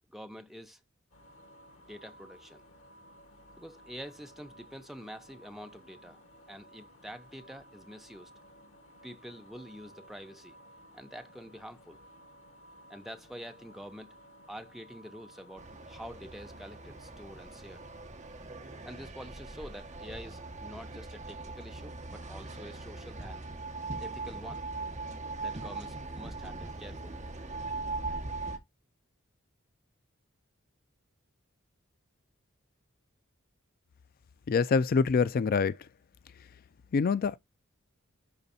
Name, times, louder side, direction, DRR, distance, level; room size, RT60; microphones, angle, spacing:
voice 1, 0.1-0.8 1.9-2.6 3.6-6.2 6.5-8.3 9.0-10.6 10.9-12.0 12.9-14.2 14.5-17.8 18.8-23.4 24.0-24.7 25.4-27.2, equal, ahead, 0.9 m, -47 dB
sound 1, 1.1-18.1, equal, 85° left, 2.1 m, -56 dB
sound 2, 15.6-28.6, right 3 dB, 35° right, 1.6 m, -40 dB
voice 2, 34.5-35.8 36.9-37.4, left 5 dB, 45° left, 0.3 m, -25 dB
12.0 x 4.0 x 2.7 m
head